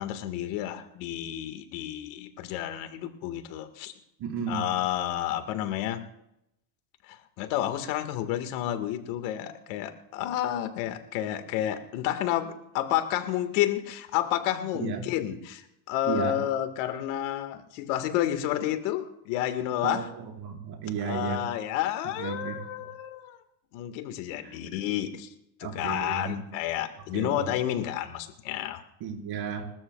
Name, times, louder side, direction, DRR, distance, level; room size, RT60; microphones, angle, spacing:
voice 1, 0.0-3.9 4.5-6.0 7.1-20.1 21.0-23.4 23.7-25.3 25.6-28.8, left 12 dB, 75° left, 8 dB, 1.9 m, -30 dB
voice 2, 4.2-4.7 14.8-15.0 16.0-16.4 19.8-21.5 22.2-22.6 24.4-24.6 25.6-26.4 27.1-27.5 29.0-29.6, right 7 dB, 55° right, 0 dB, 5.1 m, -33 dB
26.5 x 13.0 x 2.4 m, 0.80 s
supercardioid pair, 95°, 46 cm